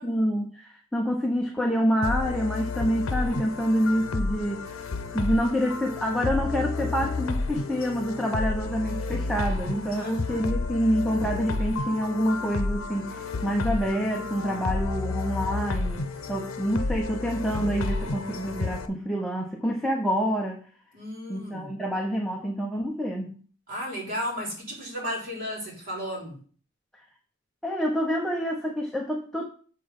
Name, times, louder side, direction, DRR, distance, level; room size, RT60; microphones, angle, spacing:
voice 1, 0.0-4.7 5.1-20.6 21.3-23.4 27.6-29.5, equal, ahead, -1 dB, 0.8 m, -27 dB
sound 1, 2.0-18.9, left 3 dB, 80° left, 0.7 m, -31 dB
voice 2, 10.0-10.5 20.9-21.7 23.7-26.4, equal, 45° right, -3 dB, 3.2 m, -34 dB
7.7 x 4.4 x 5.3 m, 0.43 s
head